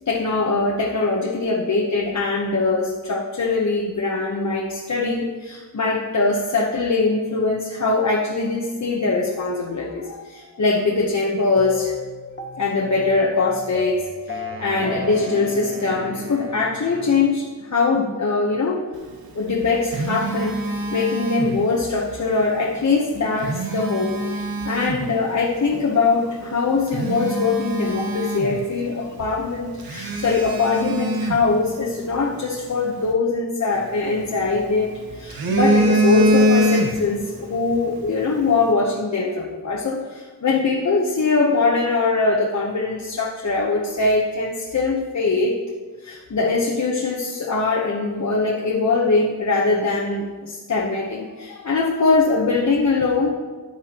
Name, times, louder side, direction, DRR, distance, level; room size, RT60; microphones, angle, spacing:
voice 1, 0.0-11.9 12.6-18.9 19.3-45.6 46.0-53.3, left 3 dB, 55° left, -3 dB, 1.0 m, -22 dB
sound 1, 11.6-17.7, left 3 dB, 30° left, 1.0 m, -35 dB
sound 2, 14.3-17.6, right 2 dB, 35° right, 1.2 m, -39 dB
Telephone, 19.4-21.9 23.2-25.1 25.7-25.9 26.4-26.5 26.9-28.9 29.2-29.3 29.8-32.2 33.7-34.7 35.1-37.3 37.5-37.8, right 1 dB, 85° right, 1.2 m, -23 dB
13.5 x 9.3 x 2.9 m, 1.4 s
wide cardioid pair, 155°, 35 cm